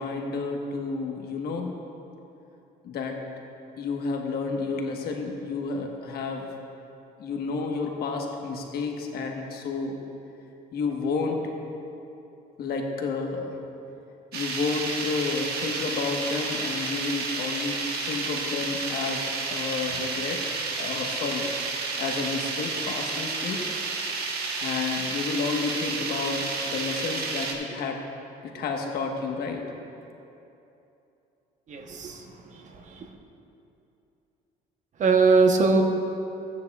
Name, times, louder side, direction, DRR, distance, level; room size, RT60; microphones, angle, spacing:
voice 1, 0.0-1.7 2.8-3.2 3.8-6.5 7.2-10.0 10.7-11.4 12.6-13.6 14.3-20.4 20.8-21.5 22.0-23.6 24.6-28.0 28.5-29.6, left 4 dB, 65° left, 2 dB, 1.3 m, -30 dB
sound 1, 14.3-27.5, right 4 dB, 70° right, 1.3 m, -31 dB
voice 2, 31.7-33.1 35.0-35.8, right 4 dB, 45° right, 4 dB, 1.0 m, -22 dB
16.0 x 9.5 x 2.4 m, 2.8 s
cardioid pair, 110°, 17 cm